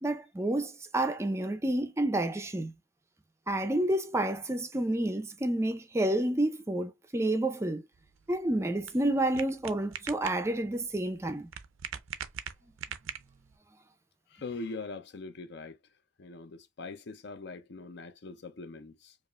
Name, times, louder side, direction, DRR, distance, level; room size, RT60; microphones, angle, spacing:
voice 1, 0.0-2.7 3.5-7.8 8.3-11.5, right 1 dB, 15° right, 0.4 m, -29 dB
sound 1, 7.9-13.6, right 8 dB, 85° right, 0.5 m, -43 dB
voice 2, 14.3-15.8 16.2-19.2, left 3 dB, 55° left, 0.5 m, -42 dB
5.0 x 2.4 x 2.2 m
head